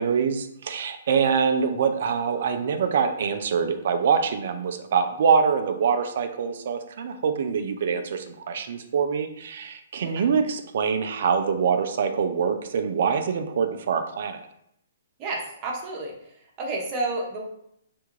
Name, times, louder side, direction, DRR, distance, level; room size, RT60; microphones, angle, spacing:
voice 1, 0.0-14.4, right 6 dB, 60° right, 8 dB, 0.4 m, -24 dB
voice 2, 15.2-16.1 16.6-17.4, right 2 dB, 30° right, -1 dB, 0.8 m, -30 dB
3.4 x 2.3 x 3.0 m, 0.73 s
hypercardioid pair, 135°, 0 cm